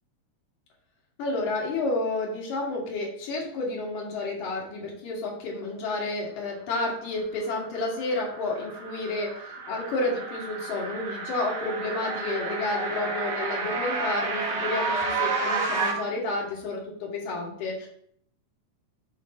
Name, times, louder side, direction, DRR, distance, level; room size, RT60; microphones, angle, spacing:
voice 1, 1.2-17.9, left 2 dB, 85° left, -3 dB, 3.0 m, -30 dB
sound 1, 7.6-15.9, right 4 dB, 60° right, 2.1 m, -31 dB
11.5 x 3.8 x 2.6 m, 0.64 s
omnidirectional pair, 3.4 m